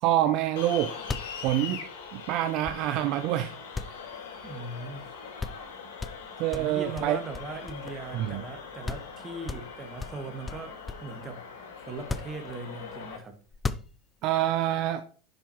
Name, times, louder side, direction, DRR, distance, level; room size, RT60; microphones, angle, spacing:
voice 1, 0.0-0.9 1.4-1.9 2.1-3.5 6.4-7.2 8.1-8.4 14.2-15.0, right 13 dB, 55° right, 0.5 m, -26 dB
sound 1, 0.6-13.2, left 6 dB, 70° left, 3.9 m, -42 dB
sound 2, 1.1-3.2 3.7-4.8 5.1-5.2 5.4-5.7 6.0-8.2 8.5-8.6 8.8-9.1 9.5-11.2 11.9-12.9 13.5-14.3, left 4 dB, 20° left, 0.4 m, -37 dB
voice 2, 4.4-5.1 6.5-11.4 11.8-13.4, right 3 dB, 25° right, 1.8 m, -39 dB
10.0 x 5.5 x 3.0 m
hypercardioid pair, 100°, 0 cm